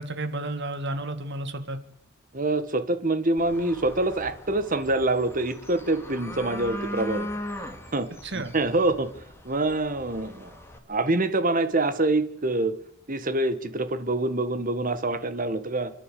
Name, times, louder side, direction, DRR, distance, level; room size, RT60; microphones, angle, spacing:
voice 1, 0.0-1.8 8.2-8.5, right 2 dB, 55° right, 9 dB, 2.3 m, -32 dB
voice 2, 2.3-7.3 7.9-8.1 8.3-9.1 9.4-10.6 10.9-12.7 13.1-15.9, right 2 dB, 40° right, 11 dB, 1.7 m, -25 dB
sound 1, 3.4-10.8, left 1 dB, 10° left, 2.8 m, -39 dB
28.5 x 11.0 x 8.6 m, 0.68 s
head